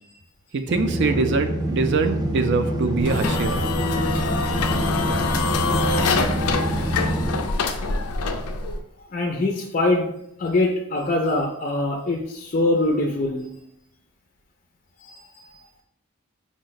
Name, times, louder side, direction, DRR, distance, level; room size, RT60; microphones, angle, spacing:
voice 1, 0.5-3.6, right 4 dB, 50° right, 8 dB, 0.4 m, -23 dB
sound 1, 0.7-7.4, right 1 dB, 20° right, 0.7 m, -26 dB
sound 2, 3.0-8.8, left 4 dB, 90° left, 0.5 m, -25 dB
voice 2, 9.1-10.1 10.4-13.5 15.0-15.6, left 2 dB, 35° left, 0 dB, 0.4 m, -23 dB
5.0 x 2.1 x 3.9 m, 0.78 s
head